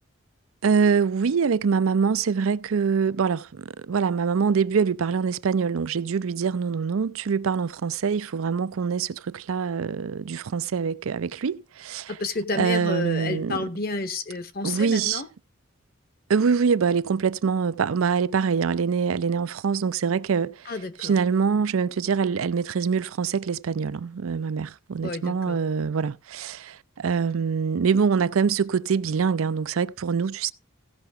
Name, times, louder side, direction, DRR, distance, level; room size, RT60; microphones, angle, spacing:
voice 1, 0.6-12.1 12.5-13.6 14.6-15.2 16.3-20.7 21.0-30.5, right 6 dB, 85° right, 0.5 m, -24 dB
voice 2, 12.1-15.3 20.7-21.2 25.0-25.6, left 3 dB, 45° left, 1.1 m, -30 dB
16.0 x 5.8 x 4.7 m
head